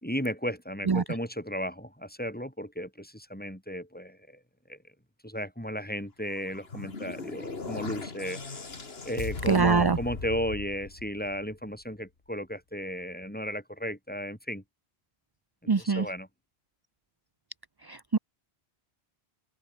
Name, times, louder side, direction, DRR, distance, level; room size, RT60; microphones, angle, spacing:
voice 1, 0.0-4.4 4.7-4.8 5.2-8.6 9.1-14.6 15.6-16.3, equal, 10° left, 5.6 m, -34 dB
sound 1, 6.3-11.7, left 4 dB, 65° left, 2.4 m, -38 dB
voice 2, 9.5-10.0 15.7-16.0 17.9-18.2, right 4 dB, 25° right, 0.5 m, -23 dB
open air
omnidirectional pair, 1.1 m